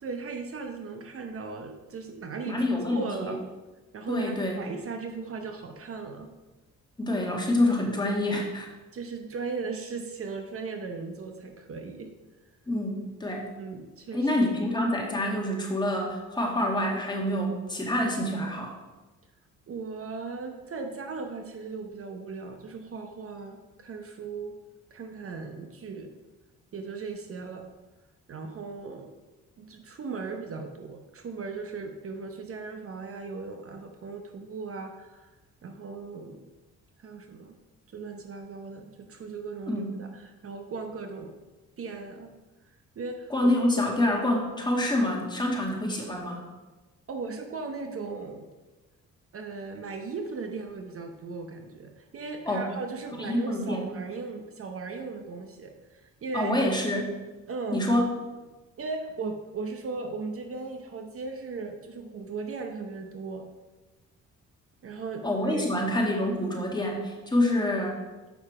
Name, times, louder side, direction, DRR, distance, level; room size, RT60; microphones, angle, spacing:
voice 1, 0.0-3.4 3.9-6.3 8.9-12.1 13.6-14.3 19.7-24.6 24.9-26.1 26.7-27.6 28.3-29.1 29.6-35.3 35.6-36.4 37.0-37.6 37.9-41.3 41.8-42.3 43.0-43.3 43.8-43.9 47.1-48.5 49.3-56.6 57.5-57.8 58.8-63.4 64.8-65.6 67.4-67.7, right 4 dB, 50° right, 5 dB, 0.9 m, -37 dB
voice 2, 2.5-3.3 4.1-4.6 7.0-8.7 12.7-13.5 14.1-18.7 39.7-39.9 43.3-46.4 52.5-52.7 53.2-53.8 56.3-57.1 57.7-58.0 65.2-68.0, left 1 dB, 15° left, -1 dB, 1.9 m, -27 dB
7.2 x 5.5 x 4.8 m, 1.2 s
cardioid pair, 90°, 30 cm